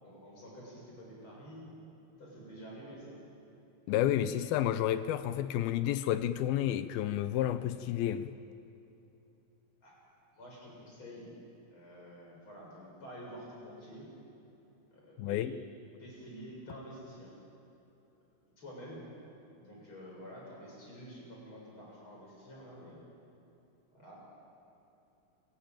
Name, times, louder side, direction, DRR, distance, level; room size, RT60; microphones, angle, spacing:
voice 1, 0.0-1.7 2.2-3.2 3.8-4.5 9.8-10.0 10.3-11.3 11.7-14.1 14.9-15.5 16.0-17.3 18.6-19.1 19.6-23.0 23.9-24.1, equal, 30° left, -3 dB, 7.7 m, -49 dB
voice 2, 3.9-8.3 15.2-15.5, left 12 dB, 80° left, 12 dB, 2.3 m, -30 dB
29.0 x 18.0 x 9.0 m, 3.0 s
omnidirectional pair, 4.8 m